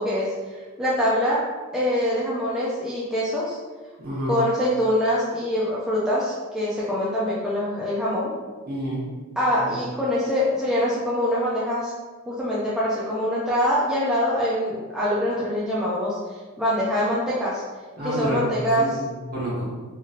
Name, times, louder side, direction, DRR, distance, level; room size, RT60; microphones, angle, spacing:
voice 1, 0.0-1.4 1.7-3.6 4.3-8.3 9.4-11.9 12.3-17.6 18.0-19.0, equal, 5° right, -8 dB, 0.4 m, -24 dB
voice 2, 4.0-4.4 8.7-9.0 9.6-9.7 18.0-19.7, equal, 45° right, -7 dB, 1.1 m, -29 dB
3.0 x 2.7 x 2.4 m, 1.4 s
head